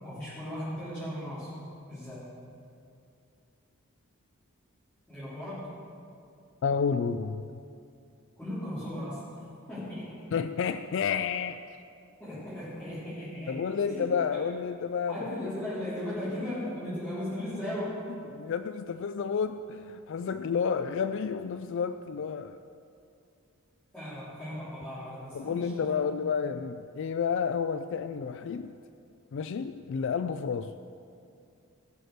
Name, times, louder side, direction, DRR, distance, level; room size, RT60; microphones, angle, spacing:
voice 1, 0.0-1.5 1.9-2.3 5.1-5.7 8.4-9.4 9.7-10.2 12.2-14.1 15.1-18.1 23.9-26.0, left 1 dB, 10° left, -15 dB, 3.5 m, -37 dB
voice 2, 6.6-7.6 10.3-11.6 13.5-15.5 18.3-22.6 25.3-28.8 29.3-30.8, left 6 dB, 55° left, 11 dB, 0.3 m, -30 dB
17.0 x 6.6 x 6.5 m, 2.4 s
head